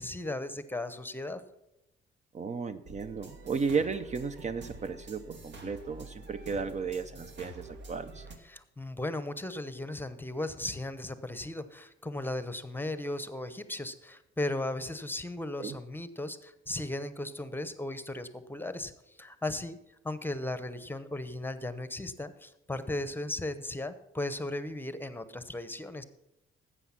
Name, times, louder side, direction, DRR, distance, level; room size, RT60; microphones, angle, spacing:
voice 1, 0.0-1.4 8.4-19.8 20.0-26.0, left 1 dB, 10° left, 12 dB, 0.9 m, -36 dB
voice 2, 2.3-8.3 15.6-15.8, right 5 dB, 35° right, 12 dB, 0.6 m, -34 dB
sound 1, 2.9-8.4, right 2 dB, 65° right, 1.7 m, -47 dB
12.0 x 8.1 x 5.8 m, 0.88 s
cardioid pair, 90°, 20 cm